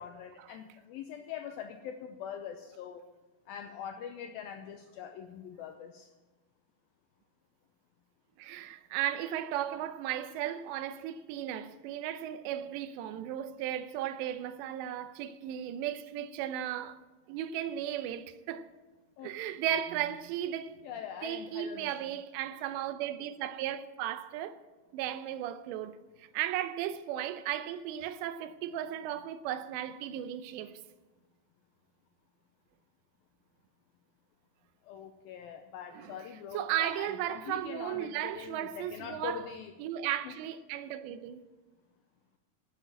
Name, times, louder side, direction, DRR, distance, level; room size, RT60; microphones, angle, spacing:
voice 1, 0.0-3.0 3.5-6.1 19.2-19.3 20.8-21.9 27.1-27.3 34.8-39.8 40.2-40.4, left 8 dB, 85° left, 2.1 m, -43 dB
voice 2, 8.4-17.0 17.3-18.7 19.2-20.8 21.2-24.6 24.9-30.8 35.9-36.2 36.5-39.4 39.8-41.4, right 11 dB, 85° right, 2.9 m, -35 dB
12.0 x 8.8 x 8.7 m
omnidirectional pair, 5.0 m